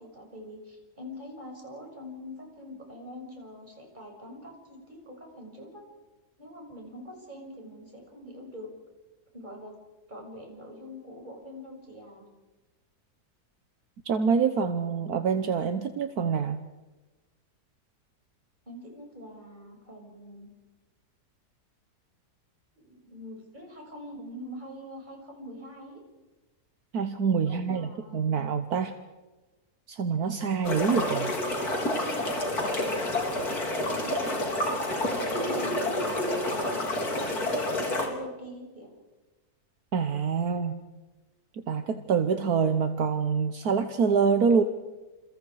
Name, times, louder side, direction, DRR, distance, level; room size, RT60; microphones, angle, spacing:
voice 1, 0.0-5.8 6.4-8.7 9.3-9.7 10.1-12.2 18.7-20.5 22.7-26.0 27.4-28.4 33.8-34.6 35.0-36.2 36.6-38.9, equal, 30° right, 0 dB, 6.8 m, -44 dB
voice 2, 14.0-16.6 26.9-28.9 29.9-31.3 39.9-40.8 41.7-44.6, right 6 dB, 70° right, 8 dB, 1.7 m, -26 dB
sound 1, 30.6-38.1, left 1 dB, 70° left, 4.3 m, -29 dB
28.5 x 28.5 x 4.9 m, 1.2 s
omnidirectional pair, 1.7 m